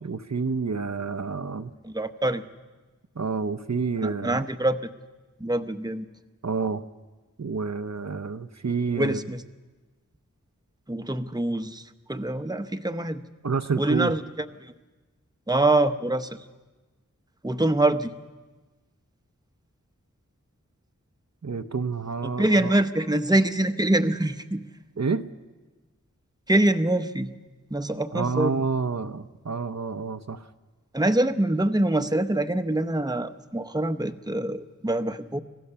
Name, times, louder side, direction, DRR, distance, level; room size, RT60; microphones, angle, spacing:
voice 1, 0.0-1.7 3.2-4.5 6.4-6.8 7.4-9.2 13.4-14.1 21.4-22.8 25.0-25.3 28.1-30.5, right 4 dB, 60° right, 9 dB, 0.8 m, -29 dB
voice 2, 1.8-2.4 4.0-4.9 5.4-6.1 8.9-9.4 10.9-13.2 13.8-14.2 14.6-14.7 15.5-16.5 17.4-18.1 22.2-24.6 26.5-27.3 27.7-28.7 30.9-35.4, right 1 dB, 10° right, 8 dB, 0.9 m, -25 dB
26.5 x 16.0 x 6.9 m, 1.2 s
wide cardioid pair, 45°, 31 cm